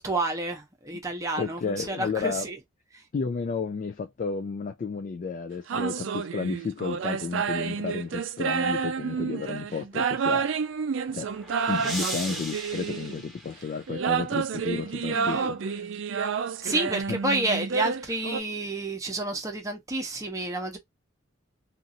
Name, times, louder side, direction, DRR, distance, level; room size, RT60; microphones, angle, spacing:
voice 1, 0.0-2.6 15.1-15.5 16.6-20.8, right 2 dB, 15° right, 0.8 m, -30 dB
voice 2, 1.4-2.5 3.1-10.5 11.1-11.3 11.7-15.9 17.1-17.2, left 5 dB, 40° left, 0.3 m, -32 dB
sound 1, 5.7-13.3 13.9-18.4, right 6 dB, 65° right, 0.4 m, -29 dB
sound 2, 10.8-14.2, right 1 dB, ahead, 1.0 m, -38 dB
2.9 x 2.6 x 2.6 m
head